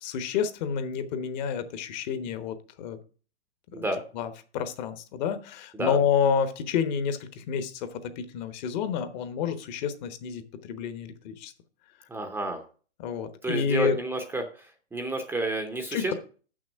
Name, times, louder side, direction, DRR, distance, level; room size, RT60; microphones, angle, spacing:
voice 1, 0.0-3.0 3.8-3.9 4.1-7.9 8.2-10.4 10.7-11.5 13.0-14.0 15.9-16.1, left 7 dB, 40° left, 10 dB, 1.1 m, -29 dB
voice 2, 12.1-12.6 13.4-16.1, right 2 dB, 5° right, 5 dB, 0.7 m, -30 dB
6.6 x 6.2 x 6.3 m, 0.39 s
hypercardioid pair, 130°, 34 cm